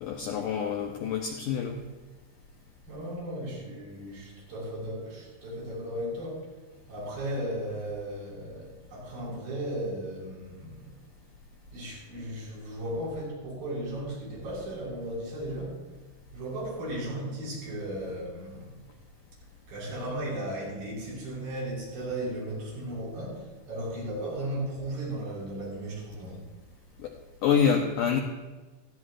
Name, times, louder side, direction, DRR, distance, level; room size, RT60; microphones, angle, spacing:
voice 1, 0.0-1.8 27.0-27.1 27.4-28.2, left 7 dB, 80° left, 2 dB, 1.9 m, -26 dB
voice 2, 2.9-6.5 6.9-11.0 11.7-15.8 16.3-18.8 19.7-26.4, right 1 dB, 60° right, -6 dB, 6.9 m, -36 dB
19.0 x 14.0 x 2.5 m, 1.2 s
omnidirectional pair, 4.8 m